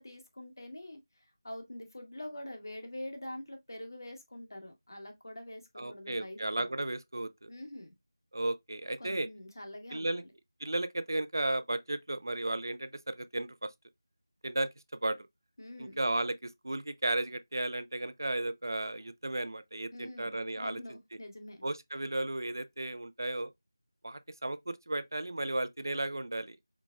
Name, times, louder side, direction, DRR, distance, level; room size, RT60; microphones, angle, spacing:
voice 1, 0.0-6.7 7.5-7.9 9.0-10.3 15.6-16.0 19.9-21.6, left 1 dB, 60° left, 1.6 m, -45 dB
voice 2, 5.8-7.5 8.3-9.3 9.9-10.2 10.6-13.7 14.4-14.7 15.0-15.2 15.8-20.8 21.6-23.5 24.0-26.6, right 2 dB, 60° right, 0.6 m, -34 dB
4.6 x 4.0 x 2.3 m
figure-of-eight pair, 175°, 2 cm